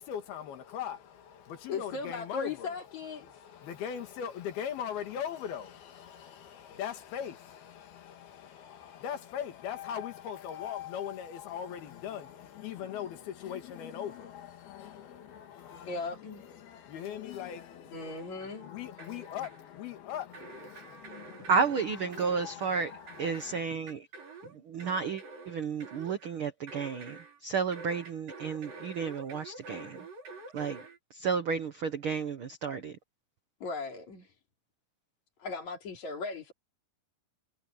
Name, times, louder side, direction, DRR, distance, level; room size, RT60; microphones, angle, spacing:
voice 1, 0.0-23.6, left 9 dB, 85° left, 4.0 m, -40 dB
voice 2, 1.7-3.4 15.9-16.4 17.9-18.7 33.6-34.4 35.4-36.5, left 4 dB, 50° left, 4.8 m, -38 dB
sound 1, 18.0-18.7 19.0-19.7 20.3-27.4 27.7-31.0, right 3 dB, 65° right, 6.0 m, -48 dB
voice 3, 21.5-22.9 23.2-24.1 24.4-30.0 30.5-30.8 31.1-33.0, right 5 dB, 85° right, 1.1 m, -32 dB
omnidirectional pair, 4.3 m